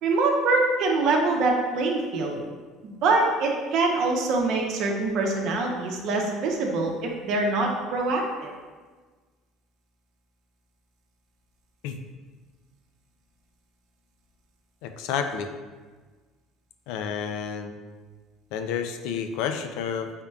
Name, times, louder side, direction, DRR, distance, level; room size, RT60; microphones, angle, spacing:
voice 1, 0.0-2.4 2.8-8.5, right 3 dB, 60° right, 1 dB, 0.7 m, -24 dB
voice 2, 14.8-15.5 16.9-17.7 18.5-20.1, left 7 dB, 80° left, 7 dB, 0.4 m, -30 dB
5.4 x 3.6 x 2.3 m, 1.4 s
cardioid pair, 130°, 0 cm